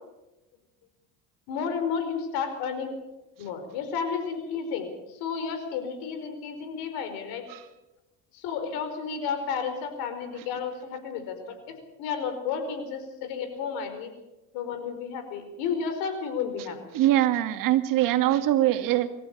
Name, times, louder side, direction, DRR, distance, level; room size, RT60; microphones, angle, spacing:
voice 1, 1.5-2.9 3.4-7.4 8.3-14.1 14.5-16.8, left 6 dB, 75° left, 7 dB, 5.0 m, -32 dB
voice 2, 16.9-19.1, right 14 dB, 60° right, 9 dB, 2.1 m, -22 dB
24.0 x 14.5 x 8.6 m, 0.99 s
supercardioid pair, 85°, 36 cm